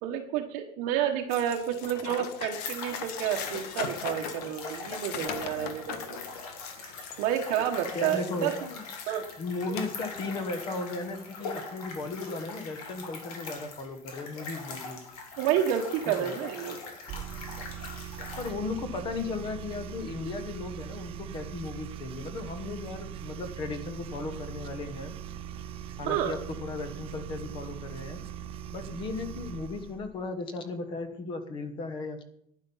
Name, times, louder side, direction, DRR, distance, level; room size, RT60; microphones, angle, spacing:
voice 1, 0.0-6.2 7.2-8.5 9.1-9.2 15.4-16.8 26.1-26.3, right 10 dB, 45° right, 2 dB, 1.1 m, -29 dB
sound 1, 1.3-9.3 9.7-10.7, left 8 dB, 90° left, 1.5 m, -40 dB
sound 2, 2.6-18.5, left 4 dB, 70° left, 3.3 m, -42 dB
voice 2, 7.6-8.9 9.4-15.0 16.1-16.3 18.4-25.1 26.0-28.2 28.7-32.2, left 3 dB, 25° left, 10 dB, 1.2 m, -36 dB
sound 3, 17.1-30.0, right 10 dB, 30° right, 0.6 m, -41 dB
11.0 x 10.0 x 5.5 m, 0.72 s
cardioid pair, 180°, 20 cm